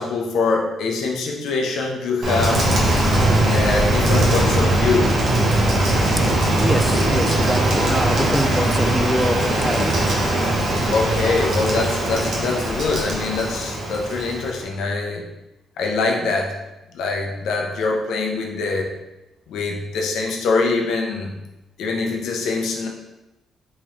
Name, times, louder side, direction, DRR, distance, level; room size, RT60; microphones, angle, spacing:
voice 1, 0.0-2.7 3.5-5.2 10.9-15.2 15.8-16.5 16.9-18.9 19.5-21.3 21.8-22.9, left 3 dB, 75° left, 1 dB, 0.6 m, -23 dB
Rain, 2.2-14.6, right 1 dB, 60° right, 0.9 m, -20 dB
voice 2, 6.5-10.9, equal, ahead, 6 dB, 0.3 m, -26 dB
3.7 x 3.0 x 3.1 m, 0.98 s
cardioid pair, 90°, 0 cm